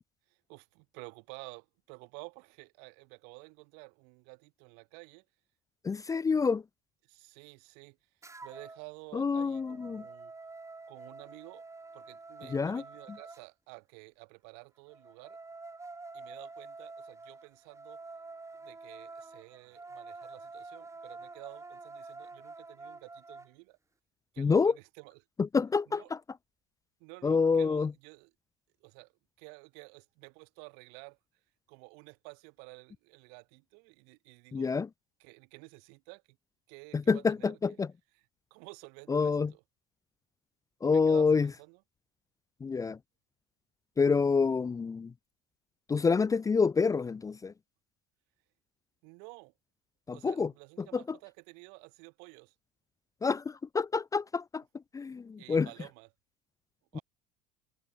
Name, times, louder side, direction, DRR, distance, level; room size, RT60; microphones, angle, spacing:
voice 1, 0.3-5.2 7.0-8.1 8.4-10.3 10.9-11.6 11.9-15.4 16.1-18.0 18.6-23.8 24.3-25.2 25.9-26.1 27.0-28.3 28.8-29.1 29.4-31.2 31.7-34.7 35.2-36.4 36.7-37.8 38.1-39.6 40.8-41.8 49.0-49.5 50.1-52.5 55.4-56.1 56.9-57.0, right 40 dB or more, 65° right, 3.4 m, -51 dB
voice 2, 5.8-6.6 9.1-10.0 12.5-12.8 24.4-24.7 25.5-26.2 27.2-27.9 34.5-34.9 36.9-37.9 39.1-39.5 40.8-41.5 42.6-43.0 44.0-45.1 45.9-47.5 50.1-50.5 53.2-54.6 54.9-55.7 56.9-57.0, left 5 dB, 20° left, 0.6 m, -27 dB
sound 1, 8.2-8.8 9.2-13.4 14.9-23.5, right 3 dB, 15° right, 3.7 m, -48 dB
hypercardioid pair, 70°, 18 cm